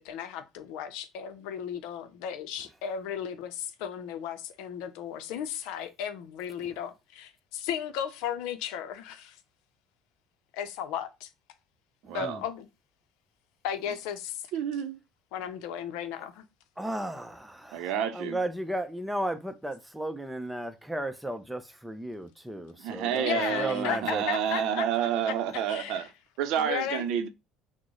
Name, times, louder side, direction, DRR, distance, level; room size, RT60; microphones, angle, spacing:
voice 1, 0.0-9.4 10.5-11.3 12.1-12.7 13.6-14.4 15.3-16.4 22.9-25.3 25.7-26.1 26.6-27.1, left 9 dB, 80° left, 0.6 m, -35 dB
voice 2, 12.1-12.4 14.5-15.0 17.7-18.4 22.8-26.0 26.4-27.3, right 9 dB, 70° right, 0.6 m, -29 dB
voice 3, 16.8-24.2, right 1 dB, 5° right, 0.6 m, -34 dB
6.0 x 2.1 x 3.1 m
supercardioid pair, 85°, 0 cm